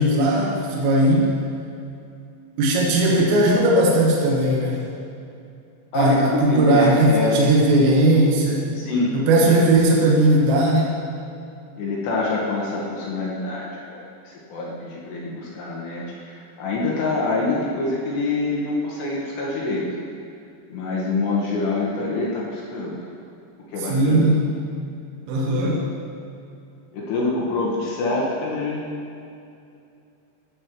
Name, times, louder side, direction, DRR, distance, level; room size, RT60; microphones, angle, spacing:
voice 1, 0.0-1.3 2.6-4.8 5.9-8.7 9.1-10.9 23.8-24.5 25.3-25.8, right 1 dB, 85° right, -2 dB, 3.8 m, -18 dB
voice 2, 5.9-7.5 8.8-9.1 9.4-9.6 11.8-19.8 20.7-23.1 23.7-24.3 25.5-25.8 26.9-28.9, left 3 dB, 70° left, -5 dB, 2.9 m, -26 dB
14.0 x 8.3 x 3.0 m, 2.6 s
omnidirectional pair, 5.8 m